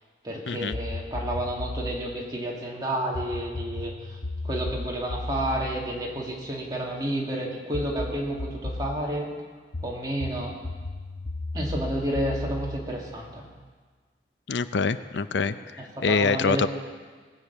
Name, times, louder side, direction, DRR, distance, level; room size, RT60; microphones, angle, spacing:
voice 1, 0.2-4.2 4.4-9.3 9.8-10.6 11.5-13.4 15.8-16.7, right 1 dB, 20° right, -2 dB, 2.3 m, -30 dB
sound 1, 0.7-2.0 3.1-6.9 7.7-9.0 9.7-13.7, left 1 dB, 65° left, 1.0 m, -35 dB
voice 2, 14.5-16.7, left 4 dB, 90° left, 12 dB, 0.5 m, -25 dB
19.5 x 6.7 x 8.2 m, 1.5 s
head